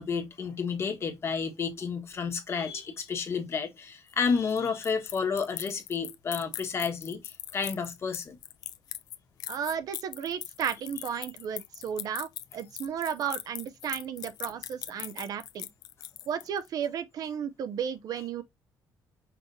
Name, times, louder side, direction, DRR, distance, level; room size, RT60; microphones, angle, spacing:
voice 1, 0.0-8.4, left 5 dB, 35° left, 1.3 m, -31 dB
sound 1, 4.1-16.7, left 12 dB, 65° left, 0.4 m, -40 dB
voice 2, 9.5-15.7 16.3-18.4, right 8 dB, 55° right, 0.6 m, -34 dB
5.8 x 3.1 x 2.6 m
cardioid pair, 140°, 7 cm